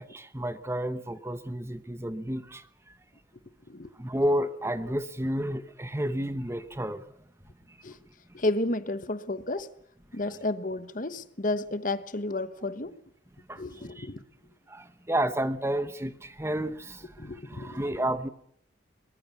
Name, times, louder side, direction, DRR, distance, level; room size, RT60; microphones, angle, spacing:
voice 1, 0.0-2.7 4.0-7.0 7.7-7.8 13.5-14.1 14.7-18.3, right 1 dB, 15° right, 0.9 m, -31 dB
voice 2, 8.3-9.7 10.1-12.9 13.5-14.2 17.2-17.8, left 2 dB, 40° left, 1.1 m, -32 dB
22.5 x 20.0 x 7.0 m
head